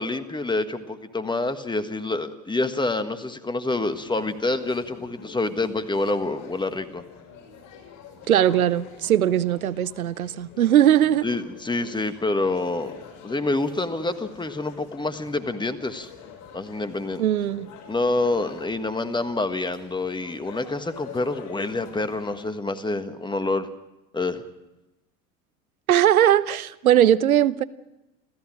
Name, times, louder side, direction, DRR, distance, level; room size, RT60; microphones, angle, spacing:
voice 1, 0.0-7.0 11.2-12.9 13.2-16.1 16.5-17.2 17.9-23.7 24.1-24.4, left 2 dB, 10° left, 1.5 m, -27 dB
sound 1, 3.7-22.5, left 6 dB, 45° left, 5.8 m, -46 dB
voice 2, 8.3-11.3 17.2-17.7 25.9-27.6, right 11 dB, 85° right, 0.7 m, -19 dB
30.0 x 14.5 x 6.3 m
figure-of-eight pair, 75°, 42 cm